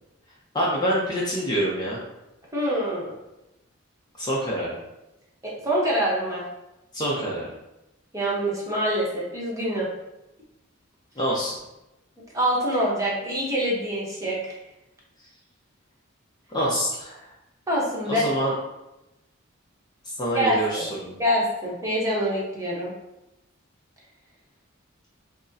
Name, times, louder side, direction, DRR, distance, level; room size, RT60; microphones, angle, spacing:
voice 1, 0.5-2.0 4.2-4.7 6.9-7.5 11.2-11.6 16.5-17.2 18.1-18.5 20.0-21.1, equal, 20° left, -5 dB, 0.5 m, -26 dB
voice 2, 2.5-3.1 5.4-6.5 8.1-9.9 12.3-14.6 17.7-18.3 20.3-20.9 21.2-22.9, equal, 15° right, -5 dB, 0.9 m, -25 dB
5.9 x 2.1 x 2.7 m, 0.95 s
head